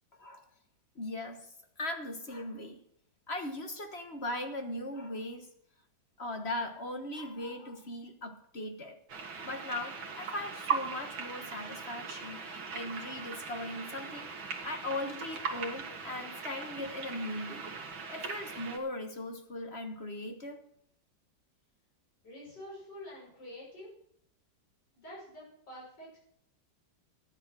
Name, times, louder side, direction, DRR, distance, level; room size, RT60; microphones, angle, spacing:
voice 1, 0.2-0.5 0.9-2.8 3.3-5.5 6.2-9.0 9.4-17.7 18.1-20.6, left 1 dB, 35° left, 6 dB, 1.4 m, -39 dB
sound 1, 9.1-18.8, right 5 dB, 85° right, 2.6 m, -39 dB
voice 2, 22.2-23.9 24.9-26.2, left 1 dB, 60° left, -5 dB, 6.8 m, -47 dB
13.0 x 9.8 x 6.1 m, 0.69 s
omnidirectional pair, 2.1 m